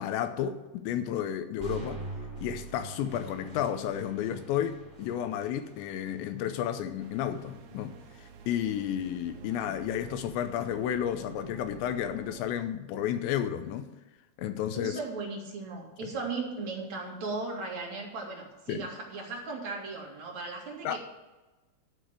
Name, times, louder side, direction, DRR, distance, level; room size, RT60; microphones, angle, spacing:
voice 1, 0.0-2.0 2.4-7.9 8.5-13.9 14.4-15.0 16.0-16.1 18.7-18.9 20.8-21.0, left 10 dB, 80° left, 2.8 m, -32 dB
sound 1, 1.6-9.6, right 3 dB, 15° right, 3.3 m, -45 dB
sound 2, 7.0-12.6, right 7 dB, 75° right, 2.6 m, -50 dB
voice 2, 9.4-9.8 14.7-21.0, right 3 dB, 45° right, 2.9 m, -37 dB
12.5 x 4.9 x 8.9 m
omnidirectional pair, 5.4 m